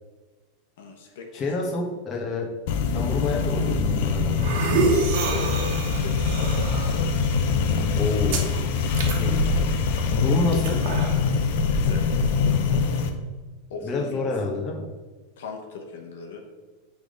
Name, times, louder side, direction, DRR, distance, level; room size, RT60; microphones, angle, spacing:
voice 1, 0.8-1.4 4.8-6.9 9.0-9.4 11.7-12.1 13.7-14.3 15.4-16.5, left 4 dB, 80° left, 2 dB, 1.0 m, -39 dB
voice 2, 1.3-2.5 2.9-4.5 7.9-8.4 9.0-10.8 13.8-14.8, left 2 dB, 25° left, -1 dB, 1.4 m, -29 dB
sound 1, 2.7-13.1, left 5 dB, 65° left, 0.7 m, -24 dB
sound 2, 4.0-12.8, right 3 dB, 65° right, 1.3 m, -29 dB
6.1 x 3.6 x 5.1 m, 1.3 s
supercardioid pair, 130°, 0 cm